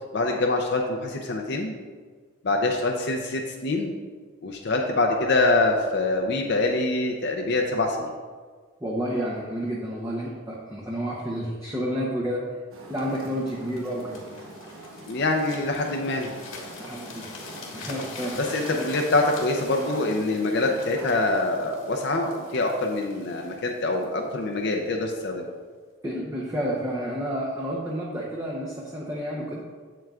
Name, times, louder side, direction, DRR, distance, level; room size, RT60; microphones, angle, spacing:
voice 1, 0.1-1.7 2.4-3.9 4.4-8.1 15.1-16.3 18.4-25.5, left 2 dB, 55° left, 2 dB, 0.6 m, -25 dB
voice 2, 8.8-12.4 12.9-14.2 16.8-17.3 17.7-18.4 18.8-18.9 26.0-29.6, equal, 15° right, -4 dB, 0.7 m, -30 dB
sound 1, 12.7-21.1, right 1 dB, 90° right, 1.0 m, -43 dB
sound 2, 13.0-24.8 25.4-25.6, left 3 dB, 80° left, 1.6 m, -44 dB
7.8 x 7.6 x 2.4 m, 1.5 s
head